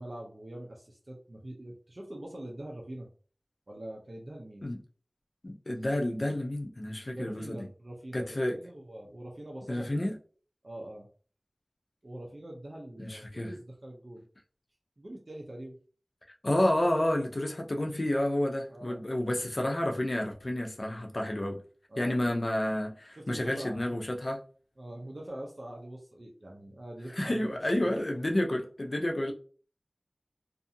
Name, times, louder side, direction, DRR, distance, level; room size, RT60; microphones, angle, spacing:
voice 1, 0.0-3.1 3.7-4.7 7.1-10.1 10.6-11.1 12.0-14.2 15.0-15.8 18.7-19.0 21.9-22.4 23.1-23.8 24.8-27.5 27.8-28.0 28.3-28.4, right 1 dB, 60° right, 0.6 m, -44 dB
voice 2, 5.4-7.6 8.1-8.6 9.7-10.2 13.0-13.5 16.4-21.6 22.0-24.4 27.2-29.3, left 1 dB, 60° left, 0.5 m, -30 dB
2.6 x 2.4 x 2.6 m
wide cardioid pair, 45°, 0 cm